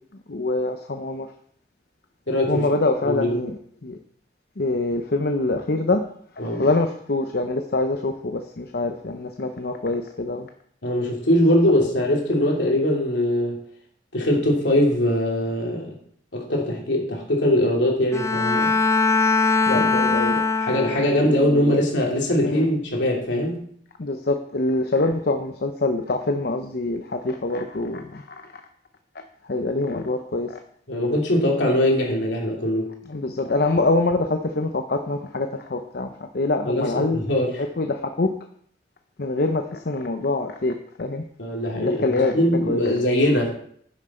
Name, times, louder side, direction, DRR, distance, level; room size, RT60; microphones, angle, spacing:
voice 1, 0.3-1.3 2.5-4.0 4.6-6.0 6.4-10.5 19.7-20.4 21.2-21.8 22.4-22.7 24.0-28.2 29.4-30.6 33.0-36.1 36.3-37.2 37.6-38.3 39.2-41.2 41.8-42.9 43.3-43.5, left 2 dB, 55° left, 5 dB, 0.7 m, -25 dB
voice 2, 2.3-2.7 3.0-3.4 6.4-6.7 10.8-13.6 14.1-16.0 16.3-18.7 19.7-19.9 20.6-23.7 30.9-32.9 36.6-37.6 41.4-43.5, left 1 dB, 70° left, -1 dB, 3.0 m, -22 dB
Bowed string instrument, 18.1-21.3, left 3 dB, 15° left, 0.5 m, -21 dB
10.5 x 7.4 x 4.4 m, 0.63 s
head